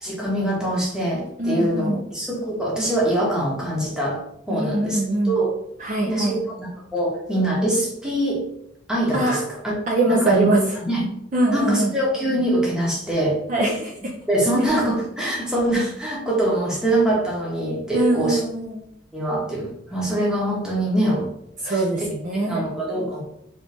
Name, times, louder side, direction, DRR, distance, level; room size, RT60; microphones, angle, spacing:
voice 1, 0.0-4.2 4.5-5.6 6.1-8.4 8.9-9.6 10.1-10.5 10.9-11.0 11.5-13.4 14.3-18.4 19.1-21.3 21.7-22.1 22.4-23.2, right 1 dB, 5° right, -4 dB, 0.8 m, -23 dB
voice 2, 1.4-2.0 4.5-5.4 5.8-6.4 9.1-9.4 9.9-10.6 11.3-11.9 13.5-13.9 17.9-18.8 21.6-22.6, right 2 dB, 40° right, -1 dB, 0.4 m, -22 dB
3.0 x 2.7 x 3.3 m, 0.76 s
head